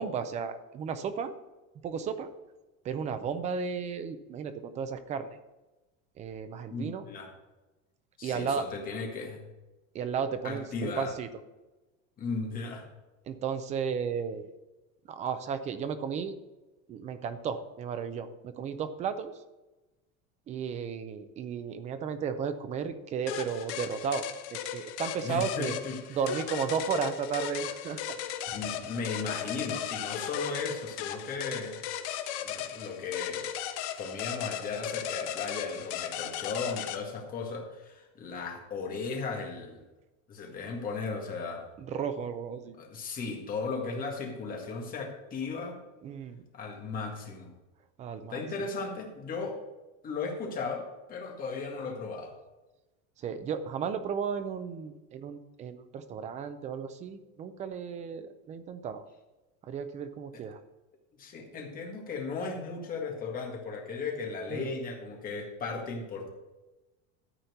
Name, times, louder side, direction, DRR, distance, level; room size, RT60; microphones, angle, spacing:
voice 1, 0.0-1.3 1.8-2.3 2.8-5.4 6.2-7.1 8.2-8.7 9.9-11.3 13.3-14.5 15.1-16.4 16.9-19.3 20.5-25.8 26.1-28.2 41.8-42.8 46.0-46.4 48.0-48.4 53.2-59.0 59.6-60.6 64.5-64.7, right 6 dB, 20° right, 10 dB, 0.5 m, -34 dB
voice 2, 6.7-7.3 8.2-9.5 10.4-11.1 12.2-12.9 25.2-26.2 28.5-31.8 32.4-33.5 33.9-39.8 40.3-41.6 42.8-45.8 46.5-47.5 48.3-49.6 50.0-52.3 61.1-66.3, left 4 dB, 25° left, 1 dB, 1.7 m, -36 dB
sound 1, 23.3-37.0, left 10 dB, 70° left, 1.2 m, -36 dB
13.0 x 4.3 x 7.9 m, 1.1 s
cardioid pair, 180°, 36 cm